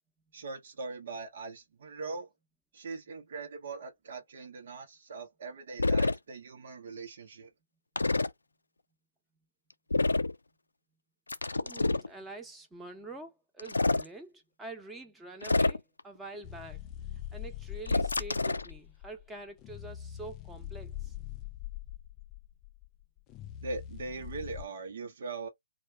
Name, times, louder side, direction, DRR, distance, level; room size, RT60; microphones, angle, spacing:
voice 1, 0.3-2.3 2.7-7.5 23.6-25.5, right 3 dB, 60° right, 1.0 m, -41 dB
sound 1, 5.8-6.2 8.0-8.3 9.9-10.3 11.3-12.1 13.6-14.1 15.4-16.0 17.9-18.7, left 3 dB, 85° left, 0.4 m, -27 dB
voice 2, 11.5-16.8 17.3-21.1, right 2 dB, 10° right, 0.9 m, -46 dB
sound 2, 16.4-24.7, left 12 dB, 25° left, 0.4 m, -43 dB
2.5 x 2.4 x 3.3 m
figure-of-eight pair, 130°, 0 cm